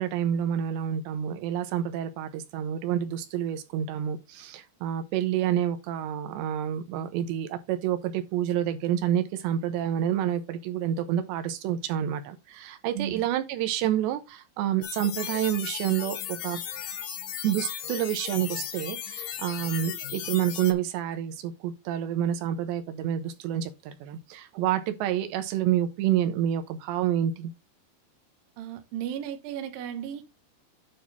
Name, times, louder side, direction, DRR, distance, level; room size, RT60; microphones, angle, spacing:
voice 1, 0.0-16.6 17.4-27.5, right 10 dB, 90° right, 3.3 m, -28 dB
sound 1, 14.8-20.7, left 10 dB, 65° left, 2.2 m, -36 dB
voice 2, 28.6-30.3, right 10 dB, 70° right, 2.5 m, -35 dB
9.3 x 3.8 x 5.5 m
omnidirectional pair, 5.0 m